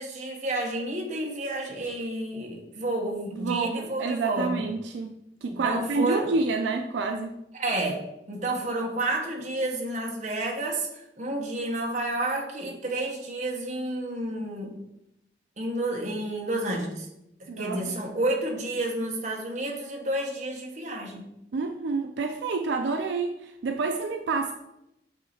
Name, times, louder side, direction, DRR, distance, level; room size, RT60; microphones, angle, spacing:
voice 1, 0.0-4.5 5.5-6.3 7.6-8.0 8.3-10.9 11.2-14.7 15.6-17.1 17.4-21.2, right 2 dB, 45° right, 0 dB, 1.1 m, -30 dB
voice 2, 3.3-7.4 17.5-18.0 21.5-24.5, right 4 dB, 80° right, 5 dB, 0.4 m, -28 dB
8.2 x 2.7 x 4.2 m, 0.84 s
head